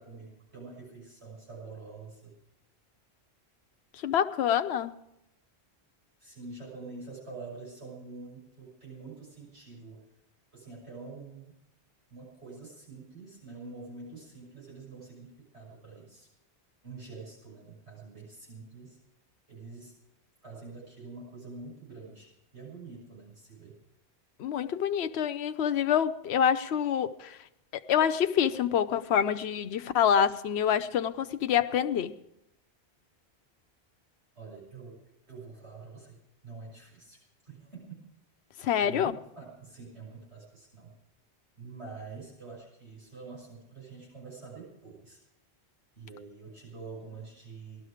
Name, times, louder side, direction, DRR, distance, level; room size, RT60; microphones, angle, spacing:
voice 1, 0.0-2.3 6.2-10.1 10.5-11.5 12.1-16.3 16.8-19.0 19.5-19.9 20.4-23.8 34.4-35.0 35.3-38.1 38.8-40.9 41.6-45.2 46.0-47.9, right 4 dB, 75° right, 6.8 m, -46 dB
voice 2, 3.9-4.9 24.4-27.4 27.7-32.2 38.6-39.2, left 9 dB, 75° left, 1.0 m, -26 dB
18.5 x 13.0 x 5.0 m
omnidirectional pair, 1.1 m